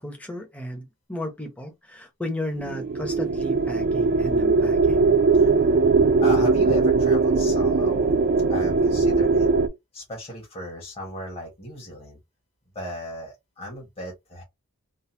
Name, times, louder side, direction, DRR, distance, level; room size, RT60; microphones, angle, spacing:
voice 1, 0.0-5.0, left 1 dB, 5° left, 0.8 m, -34 dB
sound 1, 2.6-9.7, right 4 dB, 40° right, 0.4 m, -20 dB
voice 2, 5.3-5.8 6.2-8.1 8.5-9.5 9.9-12.2 12.7-14.4, left 1 dB, 25° left, 1.3 m, -35 dB
3.8 x 2.1 x 2.7 m
head